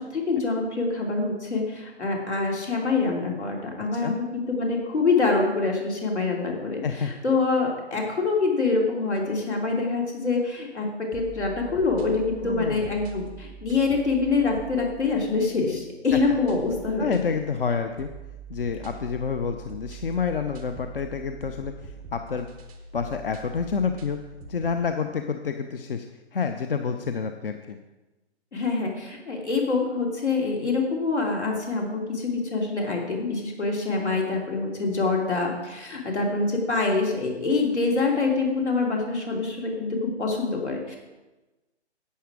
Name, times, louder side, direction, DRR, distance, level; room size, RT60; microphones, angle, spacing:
voice 1, 0.0-17.1 28.5-41.0, left 3 dB, 80° left, 0 dB, 3.1 m, -25 dB
sound 1, 11.1-24.8, right 6 dB, 5° right, 0.5 m, -43 dB
voice 2, 12.4-12.9 16.1-16.2 17.0-18.1 18.5-22.5 22.9-24.2 24.5-26.1 26.3-27.8, left 5 dB, 55° left, 7 dB, 0.7 m, -28 dB
11.5 x 8.4 x 4.8 m, 1.1 s
figure-of-eight pair, 135°, 34 cm